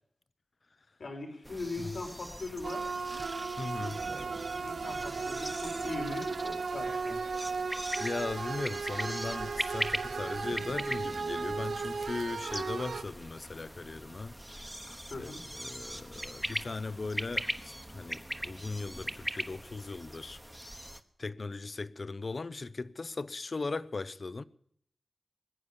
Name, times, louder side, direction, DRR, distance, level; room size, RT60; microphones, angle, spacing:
voice 1, 1.0-2.9 4.6-7.4 14.9-15.4, left 2 dB, 80° left, 3.8 m, -40 dB
sound 1, 1.4-21.0, equal, 5° right, 1.0 m, -41 dB
sound 2, 2.6-13.0, right 4 dB, 90° right, 0.8 m, -36 dB
voice 2, 3.6-4.0 8.0-14.3 15.2-20.4 21.2-24.4, left 3 dB, 55° left, 0.7 m, -38 dB
20.0 x 7.2 x 9.9 m
wide cardioid pair, 75°, 0 cm